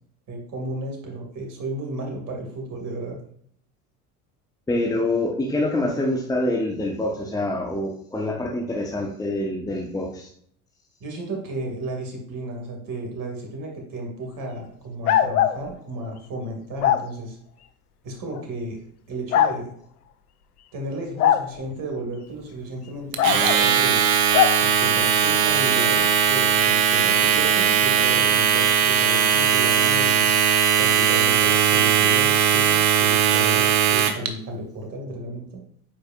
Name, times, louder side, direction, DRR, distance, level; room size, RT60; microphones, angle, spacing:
voice 1, 0.3-3.2 11.0-17.4 18.0-18.8 19.1-19.7 20.7-24.0 24.6-30.3 30.8-35.6, right 2 dB, 45° right, 1 dB, 2.2 m, -33 dB
voice 2, 4.7-10.3, left 1 dB, 10° left, 0 dB, 0.8 m, -26 dB
sound 1, 15.1-15.6 16.8-17.0 18.3-18.4 19.3-19.5 21.2-21.5 23.2-23.6 24.3-24.6, left 10 dB, 85° left, 0.5 m, -19 dB
Domestic sounds home sounds, 23.1-34.3, right 8 dB, 65° right, 0.9 m, -19 dB
8.4 x 4.6 x 2.4 m, 0.64 s
hypercardioid pair, 70°, 44 cm